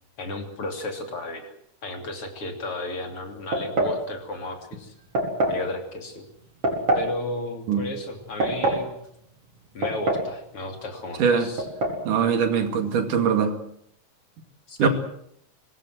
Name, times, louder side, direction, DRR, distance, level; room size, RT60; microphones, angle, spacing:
voice 1, 0.2-1.5 1.8-4.9 5.5-6.3 6.9-9.0 9.7-11.7 14.7-14.9, left 2 dB, 45° left, 4 dB, 3.8 m, -34 dB
sound 1, 3.5-4.0 5.2-5.6 6.6-7.1 8.2-8.9 9.8-10.4 10.6-10.7 11.6-12.0, right 1 dB, 45° right, 5.5 m, -24 dB
voice 2, 12.1-13.5 14.8-14.9, right 6 dB, 85° right, 7 dB, 3.9 m, -21 dB
24.0 x 19.5 x 7.8 m, 0.71 s
omnidirectional pair, 3.6 m